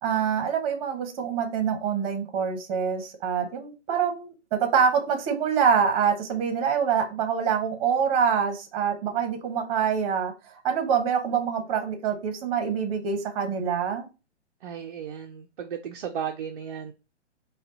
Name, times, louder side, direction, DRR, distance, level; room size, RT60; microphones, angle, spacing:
voice 1, 0.0-4.3 4.6-14.1, right 7 dB, 30° right, 1.0 m, -25 dB
voice 2, 14.6-16.9, right 8 dB, 45° right, 0.6 m, -35 dB
5.1 x 2.3 x 3.9 m
figure-of-eight pair, 130°, 36 cm